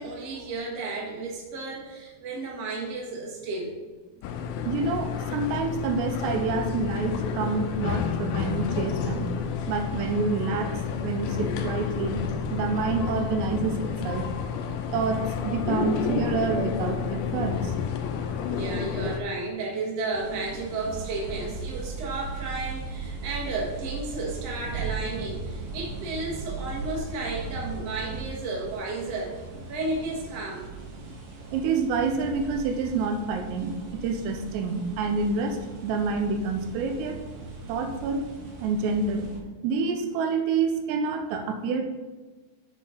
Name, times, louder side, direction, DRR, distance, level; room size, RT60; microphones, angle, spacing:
voice 1, 0.0-3.8 18.1-29.3 29.7-30.7 37.6-37.8, right 3 dB, 50° right, -2 dB, 2.2 m, -33 dB
sound 1, 4.2-19.2, left 7 dB, 80° left, 2.3 m, -30 dB
voice 2, 4.7-9.3 9.7-10.7 11.0-12.2 12.5-14.3 14.9-17.7 31.5-37.2 37.7-38.3 38.6-39.3 39.6-41.8, right 4 dB, 90° right, 5 dB, 3.0 m, -28 dB
sound 2, 20.1-39.4, right 4 dB, 70° right, 1.4 m, -38 dB
7.7 x 7.5 x 3.9 m, 1.3 s
omnidirectional pair, 4.8 m